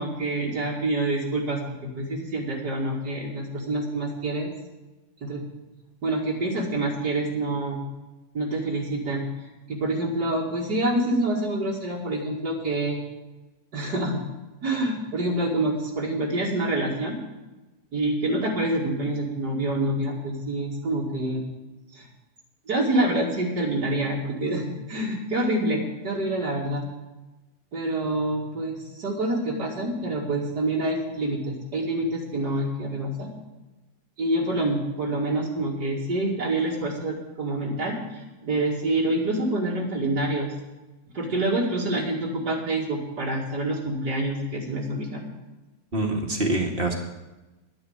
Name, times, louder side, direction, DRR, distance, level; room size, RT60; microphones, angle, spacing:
voice 1, 0.0-4.5 5.2-5.4 6.0-7.8 8.3-9.2 9.7-13.0 13.7-14.2 14.6-17.2 17.9-21.4 21.9-22.1 22.7-26.8 27.7-33.3 34.2-40.5 41.1-45.3, right 1 dB, 75° right, -4 dB, 2.7 m, -27 dB
voice 2, 45.9-46.9, right 2 dB, 35° right, 1 dB, 2.1 m, -25 dB
11.5 x 9.9 x 7.8 m, 1.1 s
omnidirectional pair, 1.8 m